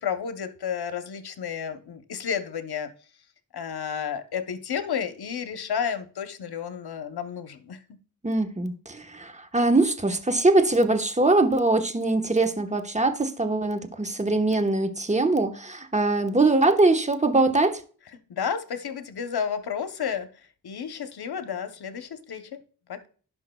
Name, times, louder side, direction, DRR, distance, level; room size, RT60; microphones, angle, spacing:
voice 1, 0.0-2.9 3.5-7.8 18.3-22.6 22.9-23.1, left 7 dB, 80° left, 0.9 m, -31 dB
voice 2, 8.2-17.8, right 2 dB, 20° right, 1.1 m, -22 dB
11.0 x 5.7 x 2.3 m
cardioid pair, 50°, 38 cm